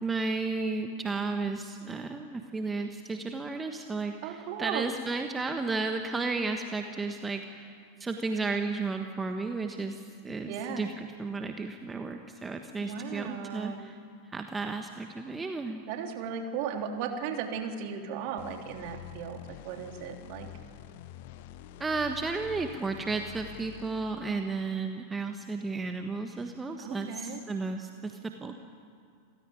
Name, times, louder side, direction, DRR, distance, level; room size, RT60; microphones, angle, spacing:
voice 1, 0.0-7.7 8.0-14.0 14.3-15.8 21.8-28.6, right 3 dB, 15° right, 5 dB, 1.4 m, -33 dB
voice 2, 4.2-4.8 10.4-10.9 12.8-13.9 15.9-19.4 19.6-20.5 26.8-27.4, right 7 dB, 45° right, 4 dB, 3.1 m, -36 dB
sound 1, 18.4-24.8, left 11 dB, 50° left, 1.0 m, -47 dB
28.0 x 16.5 x 9.7 m, 2.2 s
figure-of-eight pair, 90°, 0 cm